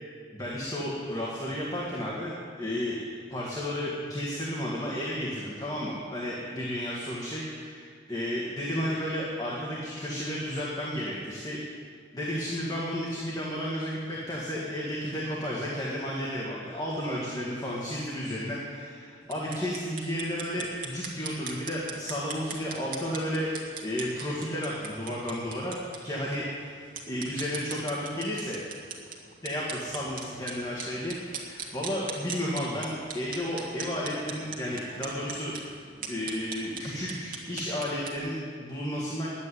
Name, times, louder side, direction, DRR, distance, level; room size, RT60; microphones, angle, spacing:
voice 1, 0.3-2.3 2.6-11.7 12.1-23.5 23.8-28.6 29.4-35.5 36.1-39.3, equal, 20° left, -5 dB, 1.7 m, -32 dB
sound 1, 19.2-38.2, right 5 dB, 45° right, 1.7 m, -41 dB
10.5 x 8.7 x 9.5 m, 2.1 s
head